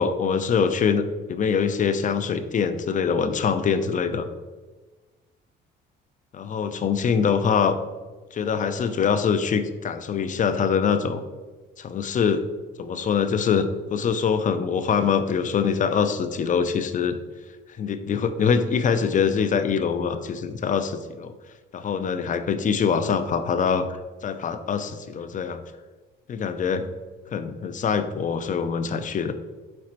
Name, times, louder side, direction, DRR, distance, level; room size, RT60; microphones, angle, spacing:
voice 1, 0.0-4.3 6.3-7.8 8.3-11.2 11.8-12.4 12.8-17.2 17.8-21.3 21.7-23.9 24.2-25.6 26.3-26.9 27.3-29.3, left 6 dB, 40° left, 10 dB, 0.4 m, -24 dB
4.3 x 4.2 x 2.5 m, 1.3 s
cardioid pair, 90°, 20 cm